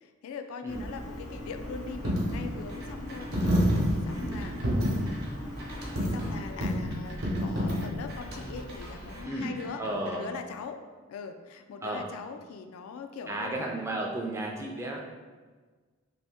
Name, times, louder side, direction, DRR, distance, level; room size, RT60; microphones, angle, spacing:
voice 1, 0.0-3.3 3.9-4.6 5.7-10.8 11.1-13.6, left 5 dB, 90° left, 7 dB, 0.3 m, -41 dB
sound 1, 0.7-6.5, left 1 dB, 70° left, 0.7 m, -42 dB
Coin (dropping), 0.7-9.2, equal, 85° right, 0.8 m, -30 dB
sound 2, 2.7-3.8 4.1-10.2, right 1 dB, 50° right, 0.7 m, -46 dB
voice 2, 9.8-10.3 11.8-12.1 13.3-15.0, right 1 dB, 15° right, -1 dB, 0.3 m, -33 dB
2.7 x 2.6 x 3.4 m, 1.4 s
head